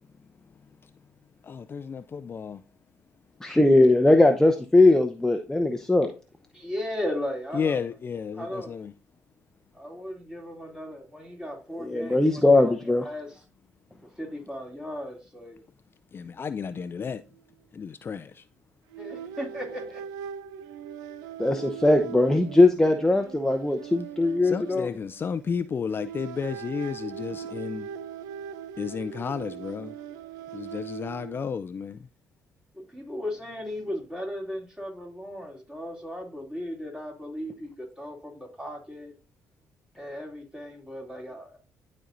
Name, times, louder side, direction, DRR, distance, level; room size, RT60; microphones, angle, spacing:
voice 1, 1.4-2.6 7.5-8.9 16.1-17.2 17.7-18.4 24.4-27.9 28.8-29.9 30.5-32.0, left 6 dB, 40° left, 0.4 m, -32 dB
voice 2, 3.4-6.1 11.8-13.1 21.4-24.9, left 2 dB, 10° left, 0.8 m, -20 dB
voice 3, 6.5-7.8 8.3-8.8 9.7-12.8 13.0-13.4 14.2-15.6 19.0-20.0 32.7-39.1 40.0-41.6, left 1 dB, 10° right, 2.7 m, -36 dB
sound 1, 16.7-16.9 17.2-17.4 18.9-25.5 25.9-31.6, right 8 dB, 90° right, 0.5 m, -40 dB
12.5 x 4.3 x 2.6 m
supercardioid pair, 75°, 6 cm